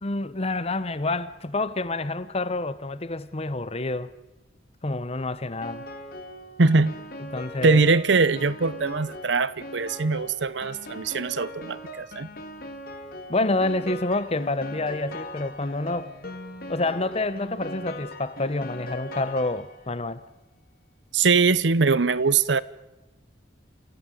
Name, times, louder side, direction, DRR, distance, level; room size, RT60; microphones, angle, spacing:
voice 1, 0.0-4.1 4.8-5.8 7.3-7.8 13.3-16.1 16.7-20.2, left 2 dB, 35° left, 0.9 m, -28 dB
Piano, 5.6-20.0, left 1 dB, 55° left, 2.6 m, -39 dB
voice 2, 6.6-6.9 7.6-12.3 21.1-22.6, right 4 dB, 70° right, 0.8 m, -22 dB
27.0 x 15.0 x 9.1 m
head